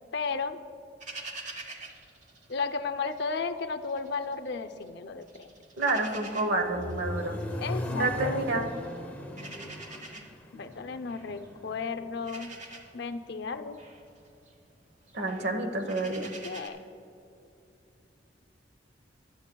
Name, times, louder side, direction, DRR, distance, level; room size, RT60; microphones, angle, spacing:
voice 1, 0.1-0.6 2.5-5.5 7.6-8.5 10.5-12.6 12.9-13.8 16.4-16.8, left 4 dB, 65° left, 9 dB, 0.5 m, -34 dB
sound 1, 1.0-3.3 3.6-4.9 5.2-16.7, right 2 dB, 40° right, 1.1 m, -47 dB
voice 2, 5.8-7.4 8.0-8.7 15.1-16.3, right 2 dB, 65° right, 5 dB, 1.1 m, -29 dB
Accelerating revving vroom, 6.1-12.2, left 1 dB, 10° left, 0.8 m, -38 dB
17.5 x 11.5 x 2.3 m, 2.8 s
head